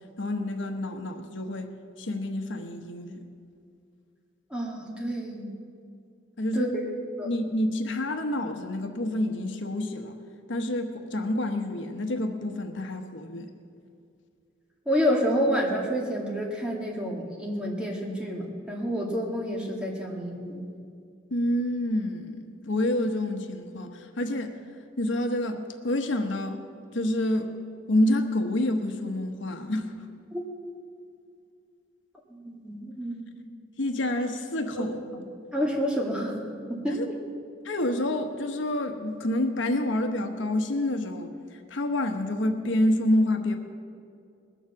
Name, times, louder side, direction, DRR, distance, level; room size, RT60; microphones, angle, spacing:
voice 1, 0.2-1.7 2.0-3.2 6.4-6.7 7.2-10.2 10.5-13.5 21.3-24.5 25.0-26.6 26.9-27.6 27.9-29.9 33.8-35.0 36.9-37.1 37.6-41.3 41.7-43.6, left 1 dB, 75° left, 5 dB, 1.1 m, -28 dB
voice 2, 4.5-5.5 6.5-6.8 7.2-7.3 14.9-20.6 30.3-30.4 32.3-33.4 34.7-34.8 35.5-36.4 36.7-37.0, equal, 5° right, -2 dB, 2.0 m, -29 dB
21.0 x 7.2 x 7.1 m, 2.4 s
head